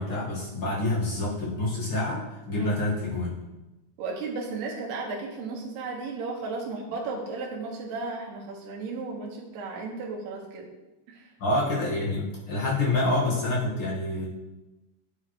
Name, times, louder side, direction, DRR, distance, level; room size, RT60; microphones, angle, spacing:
voice 1, 0.0-3.4 11.4-14.3, left 2 dB, 55° left, -5 dB, 1.5 m, -27 dB
voice 2, 4.0-10.7 11.1-11.3, right 3 dB, 70° right, -2 dB, 3.3 m, -34 dB
10.0 x 7.4 x 3.1 m, 1.0 s
omnidirectional pair, 5.0 m